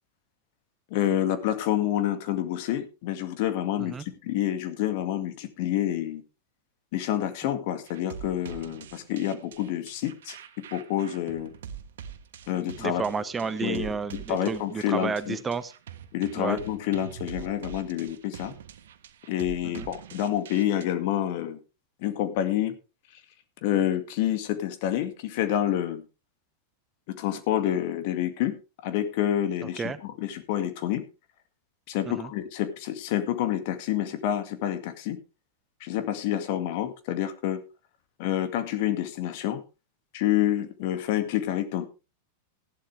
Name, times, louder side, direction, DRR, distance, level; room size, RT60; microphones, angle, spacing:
voice 1, 0.9-6.2 6.9-10.4 10.7-11.5 12.5-13.0 13.6-13.9 14.3-15.4 16.1-18.5 19.3-21.6 22.0-22.8 23.6-26.0 27.1-31.0 31.9-35.2 35.8-37.6 38.2-39.6 40.1-41.9, left 11 dB, 60° left, 10 dB, 2.1 m, -28 dB
sound 1, 7.9-20.8, right 8 dB, 70° right, 1.4 m, -44 dB
voice 2, 12.8-15.7 16.4-16.6 19.7-19.9 29.6-30.0 32.1-32.3, right 5 dB, 20° right, 14 dB, 1.0 m, -31 dB
15.0 x 11.5 x 3.4 m, 0.29 s
hypercardioid pair, 100°, 0 cm